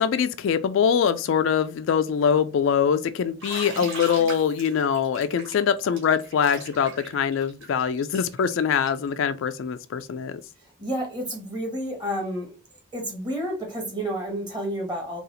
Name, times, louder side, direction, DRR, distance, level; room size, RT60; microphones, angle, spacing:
voice 1, 0.0-10.4, left 7 dB, 70° left, 0.3 m, -23 dB
Bathtub (filling or washing), 3.4-9.1, right 3 dB, 65° right, 2.4 m, -39 dB
voice 2, 10.8-12.5 12.9-15.2, equal, 20° right, 1.2 m, -30 dB
4.1 x 2.4 x 3.9 m
head